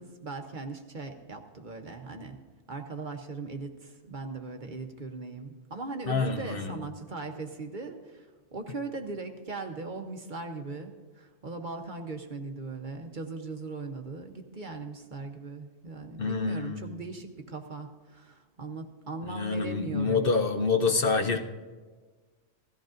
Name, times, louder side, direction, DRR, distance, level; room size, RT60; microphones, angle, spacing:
voice 1, 0.0-2.4 2.7-20.3, right 3 dB, 45° right, 4 dB, 0.9 m, -39 dB
voice 2, 6.1-6.7 16.2-16.9 19.2-21.4, left 4 dB, 55° left, 4 dB, 0.9 m, -27 dB
17.0 x 14.5 x 2.5 m, 1.4 s
omnidirectional pair, 1.3 m